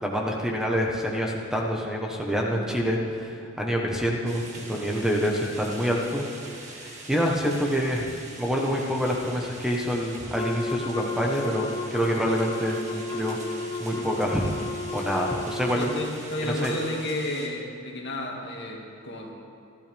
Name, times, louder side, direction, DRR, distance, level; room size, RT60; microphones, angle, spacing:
voice 1, 0.0-8.0 8.4-13.4 13.8-14.5 14.9-15.9 16.4-16.7, equal, 5° right, -1 dB, 1.2 m, -27 dB
sound 1, 4.3-17.5, right 2 dB, 35° right, 2.1 m, -44 dB
Wind instrument woodwind instrument, 10.3-16.1, left 3 dB, 20° left, 0.6 m, -33 dB
voice 2, 15.7-19.3, left 1 dB, 55° left, -1 dB, 2.2 m, -32 dB
27.5 x 12.0 x 3.5 m, 2.4 s
head